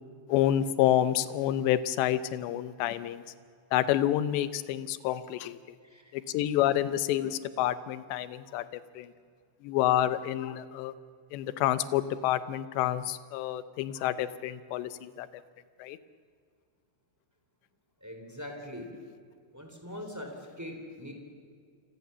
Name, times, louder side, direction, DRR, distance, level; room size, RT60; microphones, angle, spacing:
voice 1, 0.3-3.2 3.7-5.6 6.1-9.1 9.6-10.9 11.3-15.4 15.8-16.0, left 12 dB, 75° left, 14 dB, 2.8 m, -28 dB
voice 2, 5.8-6.1 18.0-18.9 19.5-21.1, left 1 dB, 5° right, 3 dB, 2.7 m, -42 dB
28.0 x 25.5 x 7.0 m, 2.1 s
omnidirectional pair, 5.6 m